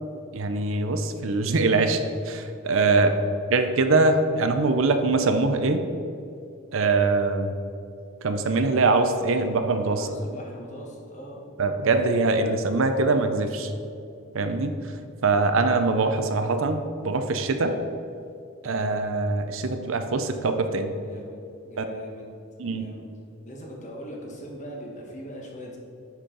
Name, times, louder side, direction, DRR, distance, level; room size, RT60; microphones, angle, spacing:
voice 1, 0.3-2.0 2.3-3.1 3.5-5.8 6.7-7.6 8.2-10.1 11.6-13.7 14.3-14.7 15.2-17.8 18.6-20.9 21.8-21.9 22.6-22.9, right 3 dB, 70° right, 7 dB, 0.5 m, -23 dB
voice 2, 2.9-3.2 9.9-11.4 21.0-21.4 21.6-22.3 22.7-23.0 23.4-25.8, equal, 35° left, -1 dB, 1.2 m, -40 dB
9.9 x 4.3 x 3.8 m, 2.6 s
head